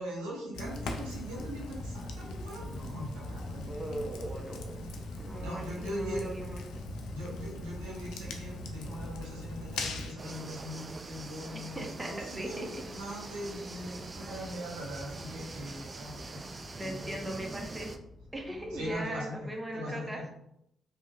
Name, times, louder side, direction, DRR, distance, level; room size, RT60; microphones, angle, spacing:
voice 1, 0.0-3.7 5.4-6.3 7.1-16.4 16.8-17.1 18.7-19.3 19.7-20.3, equal, 85° right, -4 dB, 0.9 m, -41 dB
Fire, 0.5-10.1, left 2 dB, 75° left, 0.4 m, -40 dB
sound 1, 3.3-19.0, left 1 dB, 10° left, 1.4 m, -54 dB
voice 2, 3.7-4.8 5.2-6.6 11.7-12.8 16.7-17.9 18.3-20.3, right 1 dB, 15° right, 1 dB, 0.7 m, -39 dB
sound 2, 10.2-18.0, right 3 dB, 35° right, 0.3 m, -44 dB
3.0 x 2.8 x 2.3 m, 0.77 s
hypercardioid pair, 45°, 0 cm